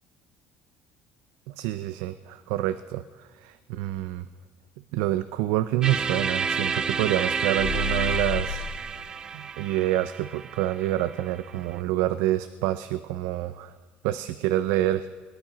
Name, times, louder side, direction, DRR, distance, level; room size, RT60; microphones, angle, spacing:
voice 1, 1.5-4.3 4.9-8.7 9.3-13.8 14.0-15.1, right 14 dB, 85° right, 12 dB, 0.4 m, -27 dB
sound 1, 5.8-11.7, right 5 dB, 20° right, 0.4 m, -30 dB
Improvized Reaper Horn, 7.6-8.8, left 7 dB, 55° left, 1.1 m, -31 dB
19.0 x 10.0 x 5.0 m, 1.4 s
cardioid pair, 175°, 4 cm